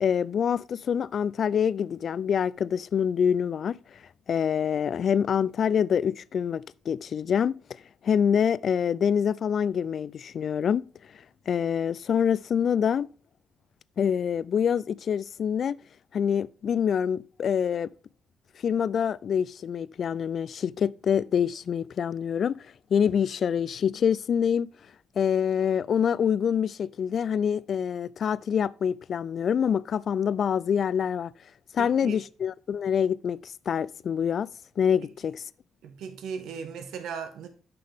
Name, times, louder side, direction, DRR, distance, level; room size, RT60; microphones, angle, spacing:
voice 1, 0.0-3.8 4.3-7.6 8.0-10.9 11.5-13.1 14.0-15.8 16.1-17.9 18.6-22.6 22.9-24.7 25.2-31.3 31.7-34.5 34.8-35.4, left 8 dB, 45° left, 0.3 m, -26 dB
voice 2, 31.8-32.2 35.8-37.5, right 6 dB, 80° right, 1.3 m, -37 dB
9.7 x 5.9 x 3.5 m
cardioid pair, 150°, 0 cm